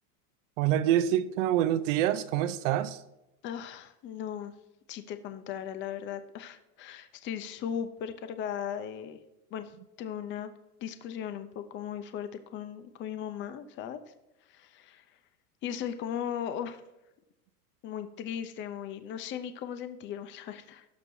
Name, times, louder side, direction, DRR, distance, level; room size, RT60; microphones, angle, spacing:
voice 1, 0.6-3.0, right 11 dB, 55° right, 13 dB, 0.7 m, -26 dB
voice 2, 3.4-4.5 4.9-9.2 9.5-9.7 10.0-10.5 10.8-14.0 14.5-15.0 15.6-16.8 17.8-20.8, left 9 dB, 25° left, 10 dB, 0.6 m, -37 dB
18.0 x 6.0 x 2.7 m, 0.95 s
supercardioid pair, 130°, 46 cm